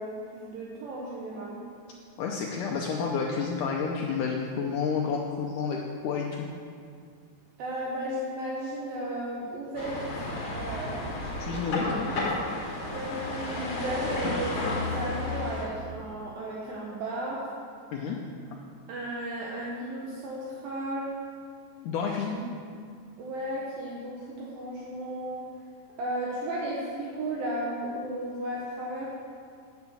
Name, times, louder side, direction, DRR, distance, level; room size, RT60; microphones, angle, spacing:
voice 1, 0.0-1.6 7.6-10.0 10.5-11.0 11.7-11.8 12.9-17.5 18.9-21.2 22.3-22.5 23.2-25.5 26.0-29.1, right 1 dB, 70° right, -4 dB, 2.8 m, -34 dB
voice 2, 2.2-6.5 11.4-12.1 17.9-18.2 21.8-22.4, left 5 dB, 85° left, 0 dB, 1.8 m, -30 dB
sound 1, 9.7-15.7, left 2 dB, 45° left, 1.9 m, -32 dB
9.9 x 7.1 x 6.9 m, 2.3 s
omnidirectional pair, 4.5 m